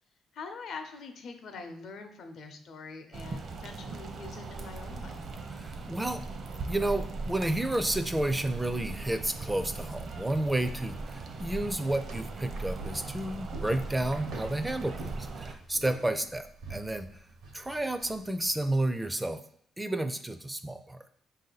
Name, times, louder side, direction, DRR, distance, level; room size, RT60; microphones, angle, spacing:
voice 1, 0.3-5.3 16.0-16.3, left 4 dB, 70° left, 6 dB, 0.7 m, -44 dB
sound 1, 3.1-15.5, right 3 dB, 55° right, 0.7 m, -39 dB
voice 2, 5.6-6.3 6.7-17.2 17.5-19.4 19.8-21.0, right 1 dB, 10° right, 9 dB, 0.4 m, -31 dB
sound 2, 9.9-18.7, right 3 dB, 85° right, 1.0 m, -48 dB
4.9 x 2.7 x 3.9 m, 0.68 s
cardioid pair, 90°, 0 cm